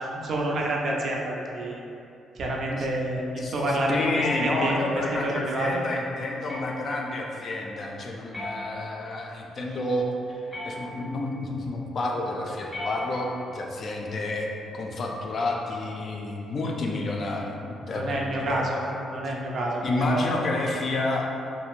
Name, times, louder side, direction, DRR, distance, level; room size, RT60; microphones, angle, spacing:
voice 1, 0.0-1.8 2.4-4.0 4.4-5.8 17.9-18.8 19.1-20.5, right 1 dB, 60° right, -2 dB, 0.4 m, -28 dB
voice 2, 3.4-14.5 14.7-18.7 19.8-21.3, left 2 dB, 50° left, -1 dB, 0.3 m, -29 dB
sound 1, 4.1-5.0 6.5-7.0 8.3-9.2 10.5-11.2 12.7-13.6, left 2 dB, 10° left, 0.7 m, -37 dB
2.4 x 2.0 x 3.0 m, 2.7 s
cardioid pair, 90°, 0 cm